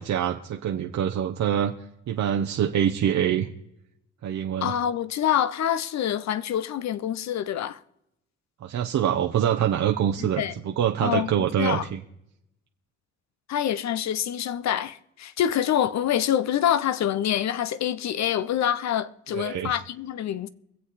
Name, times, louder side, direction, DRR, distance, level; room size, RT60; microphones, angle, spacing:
voice 1, 0.0-1.7 2.1-3.5 4.2-4.7 8.6-12.0 19.3-19.7, right 9 dB, 65° right, 1.0 m, -25 dB
voice 2, 4.6-7.8 10.2-10.5 11.0-11.8 13.5-20.5, left 10 dB, 65° left, 0.8 m, -26 dB
24.0 x 8.0 x 4.2 m
cardioid pair, 90°, 30 cm